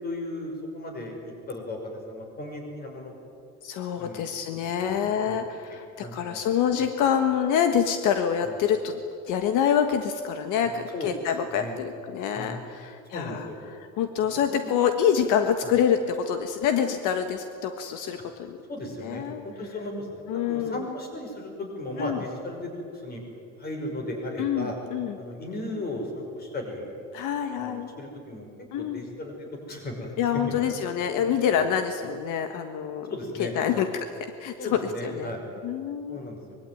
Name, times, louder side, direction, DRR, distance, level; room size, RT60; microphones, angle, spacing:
voice 1, 0.0-3.1 4.0-4.3 4.8-5.4 6.0-6.4 6.8-6.9 8.4-8.6 10.6-11.1 11.5-11.8 12.3-12.7 13.1-13.6 14.3-14.8 15.6-15.7 18.7-23.2 23.6-24.7 25.2-26.9 27.6-28.5 28.8-30.6 31.0-31.3 31.6-31.7 33.1-33.9 34.6-35.4 36.1-36.4, left 1 dB, 30° left, 2 dB, 5.7 m, -36 dB
voice 2, 3.6-9.0 9.2-18.6 19.0-19.4 20.3-20.8 22.0-22.2 24.4-25.2 27.1-27.9 28.7-29.0 30.2-33.1 33.4-34.1 34.4-35.3 35.6-36.4, left 8 dB, 75° left, 7 dB, 1.6 m, -26 dB
24.5 x 22.5 x 9.4 m, 2.5 s
cardioid pair, 175°, 31 cm